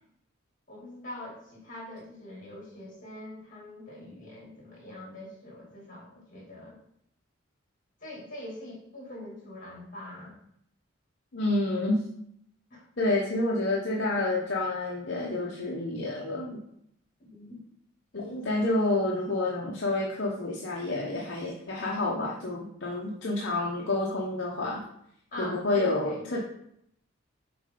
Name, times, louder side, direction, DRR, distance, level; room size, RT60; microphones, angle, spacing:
voice 1, 0.7-6.8 8.0-10.4 12.7-12.8 17.2-17.6 18.1-18.7 25.3-26.2, left 1 dB, 40° left, -3 dB, 2.6 m, -43 dB
voice 2, 11.3-12.1 13.0-16.6 18.1-24.8 25.4-26.4, left 2 dB, 55° left, -3 dB, 0.9 m, -29 dB
7.0 x 4.3 x 3.8 m, 0.73 s
head